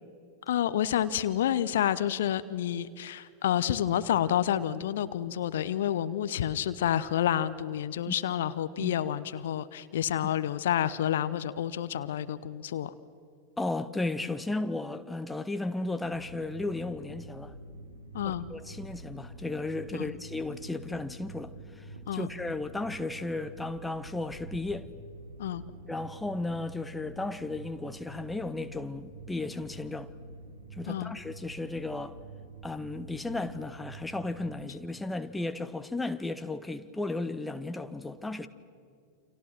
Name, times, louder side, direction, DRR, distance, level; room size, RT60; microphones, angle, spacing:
voice 1, 0.5-12.9 18.1-18.5 19.9-20.2 22.1-22.3 25.4-25.6 30.9-31.1, left 10 dB, 60° left, 0.9 m, -29 dB
voice 2, 13.6-17.5 18.2-24.9 25.9-30.1 30.7-32.2 32.6-38.5, left 2 dB, 5° left, 1.2 m, -34 dB
sound 1, 16.0-34.7, right 2 dB, 80° right, 3.2 m, -47 dB
29.5 x 27.5 x 6.2 m
figure-of-eight pair, 90°, 0 cm